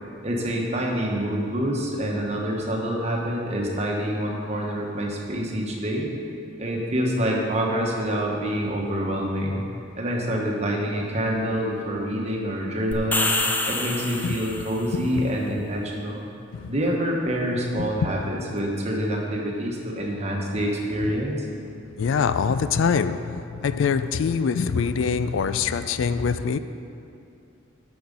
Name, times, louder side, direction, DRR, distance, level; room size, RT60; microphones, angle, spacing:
voice 1, 0.2-6.1 6.6-9.6 10.0-13.3 13.7-16.3 16.7-21.5, equal, 35° right, -1 dB, 1.2 m, -26 dB
sound 1, 12.9-14.8, left 2 dB, 10° left, 0.5 m, -26 dB
voice 2, 15.0-15.3 16.5-16.7 17.8-18.1 22.0-26.6, left 6 dB, 75° left, 12 dB, 0.3 m, -24 dB
8.7 x 6.3 x 5.4 m, 2.7 s
head